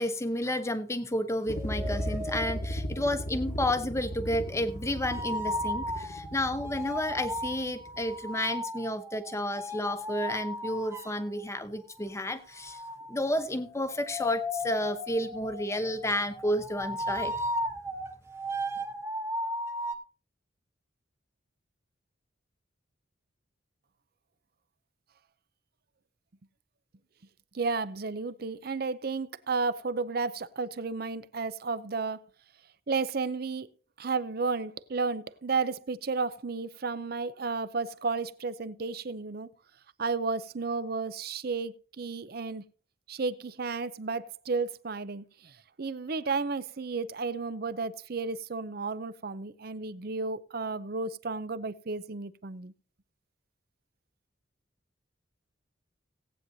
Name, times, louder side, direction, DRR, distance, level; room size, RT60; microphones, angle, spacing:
voice 1, 0.0-12.8 13.1-17.4, left 1 dB, 15° left, 0.9 m, -31 dB
sound 1, 1.5-8.2, equal, 45° left, 1.1 m, -37 dB
sound 2, 1.5-2.9 4.9-11.3 12.6-20.0, left 1 dB, 15° right, 1.0 m, -36 dB
voice 2, 27.5-32.2 32.9-33.7 34.0-39.5 40.0-42.6 43.1-45.5 45.8-52.7, right 4 dB, 50° right, 0.6 m, -32 dB
18.0 x 9.1 x 2.7 m
head